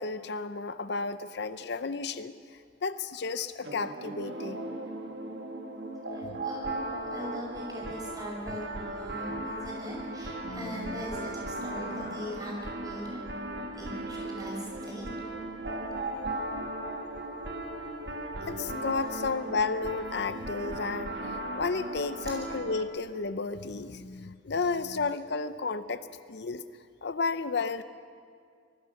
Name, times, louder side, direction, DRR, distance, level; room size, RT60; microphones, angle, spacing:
voice 1, 0.0-4.6 6.2-6.5 10.4-11.0 16.1-16.2 18.4-26.6 27.0-27.8, left 4 dB, 60° left, 12 dB, 0.6 m, -33 dB
sound 1, 3.6-22.8, right 1 dB, 60° right, 1.9 m, -37 dB
voice 2, 6.1-15.0 22.2-22.3, equal, 20° right, -2 dB, 6.0 m, -41 dB
25.5 x 20.5 x 6.5 m, 2.2 s
head